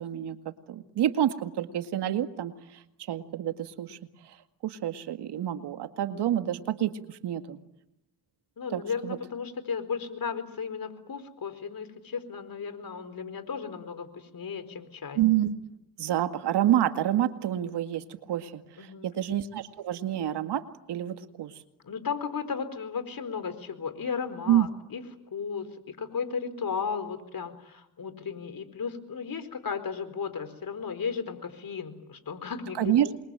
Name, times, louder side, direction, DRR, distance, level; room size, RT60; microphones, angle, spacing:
voice 1, 0.0-2.5 3.1-4.0 4.6-7.6 8.7-9.2 15.2-15.5 16.0-21.5 24.5-24.7 32.8-33.1, right 11 dB, 75° right, 8 dB, 2.1 m, -28 dB
voice 2, 8.6-15.2 18.8-19.1 21.8-25.0 25.3-33.1, left 6 dB, 55° left, 12 dB, 4.5 m, -35 dB
28.0 x 23.0 x 9.2 m, 0.86 s
supercardioid pair, 50°, 41 cm